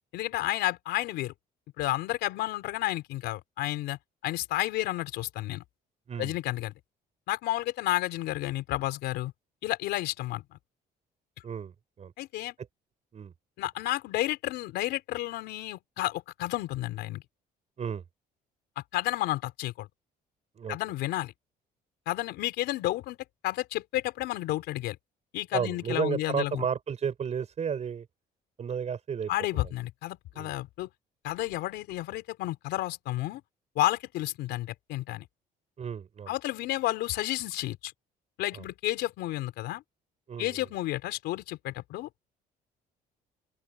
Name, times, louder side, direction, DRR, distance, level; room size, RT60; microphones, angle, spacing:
voice 1, 0.1-1.3 1.8-5.6 6.2-6.7 7.3-9.3 9.6-10.6 12.2-12.5 13.6-17.2 18.9-19.9 20.7-21.3 22.1-23.2 23.4-25.0 25.3-26.7 29.3-30.9 31.2-33.4 33.8-35.3 36.3-37.9 38.4-39.8 40.4-42.1, left 16 dB, 85° left, 4.2 m, -31 dB
voice 2, 25.5-28.0 28.6-29.3 29.6-29.7 30.3-30.5 35.8-36.3 40.3-40.7, right 7 dB, 40° right, 6.0 m, -32 dB
open air
cardioid pair, 110°, 17 cm